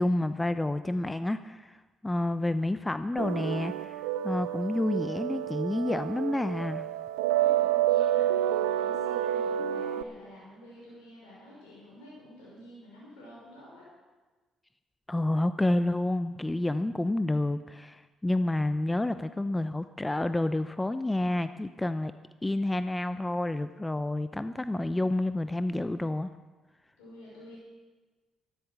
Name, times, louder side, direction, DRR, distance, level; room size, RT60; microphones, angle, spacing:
voice 1, 0.0-6.9 15.1-22.1 22.4-26.3, left 1 dB, 15° left, 12 dB, 0.6 m, -29 dB
sound 1, 3.2-10.0, right 12 dB, 85° right, 0.5 m, -29 dB
voice 2, 7.3-13.9 27.0-27.6, equal, 80° left, -6 dB, 5.6 m, -49 dB
14.0 x 12.5 x 6.3 m, 1.3 s
hypercardioid pair, 50°, 0 cm